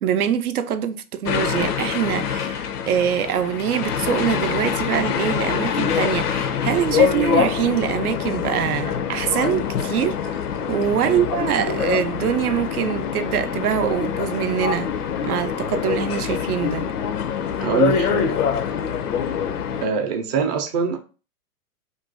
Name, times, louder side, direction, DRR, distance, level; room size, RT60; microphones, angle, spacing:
voice 1, 0.0-10.4 10.7-14.9 15.2-16.9, right 9 dB, 75° right, 0.5 m, -24 dB
sound 1, 1.3-19.9, left 7 dB, 85° left, 0.5 m, -25 dB
voice 2, 17.6-18.4 19.8-21.0, right 6 dB, 30° right, 0.5 m, -23 dB
2.5 x 2.3 x 3.8 m
hypercardioid pair, 115°, 44 cm